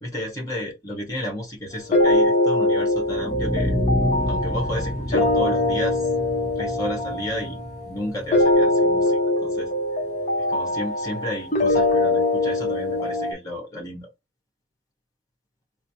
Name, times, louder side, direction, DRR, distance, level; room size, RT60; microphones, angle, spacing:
voice 1, 0.0-3.8 4.3-6.1 6.5-7.6 7.9-9.7 10.5-14.1, left 1 dB, 20° left, 1.2 m, -32 dB
sound 1, 1.9-13.3, left 2 dB, 40° left, 0.7 m, -22 dB
sound 2, 2.9-8.9, left 1 dB, 10° right, 1.4 m, -28 dB
3.2 x 2.0 x 4.1 m
head